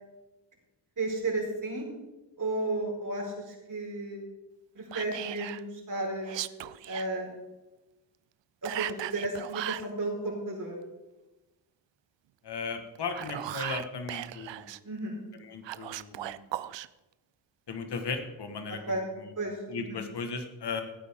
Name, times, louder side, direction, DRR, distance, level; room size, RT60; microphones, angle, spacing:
voice 1, 1.0-1.9 2.4-4.2 4.7-6.5 6.9-7.3 8.6-10.8 14.8-15.2 18.9-19.0 19.4-20.0, right 2 dB, 40° right, -2 dB, 4.7 m, -33 dB
Whispering, 4.9-5.6 6.2-7.1 8.6-9.9 12.9-14.8 15.6-16.9, right 14 dB, 70° right, 0.6 m, -37 dB
voice 2, 12.4-14.7 15.4-16.4 17.7-19.3 19.7-20.8, left 4 dB, 60° left, 6 dB, 1.7 m, -36 dB
15.5 x 9.0 x 3.7 m, 1.1 s
cardioid pair, 80°, 45 cm